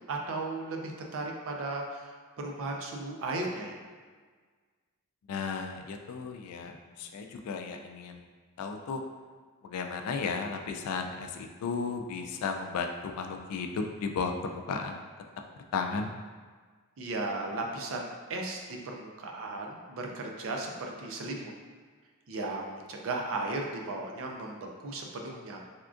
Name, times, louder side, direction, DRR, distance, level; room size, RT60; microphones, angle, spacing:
voice 1, 0.1-2.1 2.4-3.8 17.0-21.5 22.3-24.6 24.8-25.6, right 2 dB, 60° right, 1 dB, 0.4 m, -35 dB
voice 2, 5.3-8.3 8.6-9.0 9.6-15.0 15.7-16.1, left 5 dB, 85° left, 4 dB, 0.3 m, -34 dB
3.5 x 2.4 x 2.4 m, 1.5 s
head